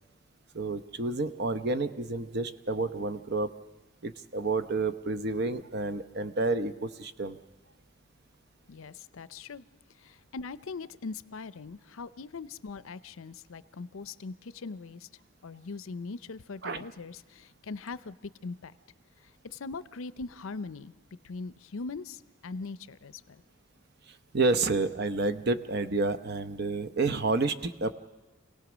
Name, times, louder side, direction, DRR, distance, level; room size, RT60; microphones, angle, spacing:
voice 1, 0.5-3.5 4.0-7.4 16.6-16.8 24.1-27.9, right 3 dB, 50° right, 11 dB, 0.8 m, -30 dB
voice 2, 8.7-9.7 10.0-15.1 15.4-18.7 19.5-20.9 21.2-23.4, left 4 dB, 75° left, 16 dB, 0.6 m, -41 dB
27.0 x 17.5 x 6.2 m, 1.2 s
head